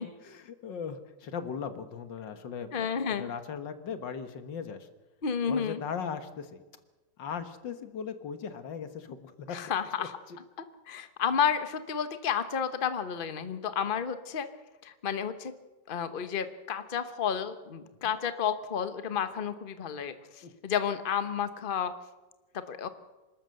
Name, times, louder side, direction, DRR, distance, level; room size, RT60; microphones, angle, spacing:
voice 1, 0.2-4.9 5.5-6.6 7.2-9.6 10.0-10.4 20.4-20.5, left 6 dB, 85° left, 10 dB, 2.1 m, -38 dB
voice 2, 2.7-3.3 5.2-5.8 9.5-10.2 10.9-14.5 14.8-15.5 15.9-21.9 22.5-22.9, left 7 dB, 35° left, 11 dB, 1.2 m, -31 dB
26.5 x 13.0 x 7.7 m, 1.1 s
omnidirectional pair, 1.9 m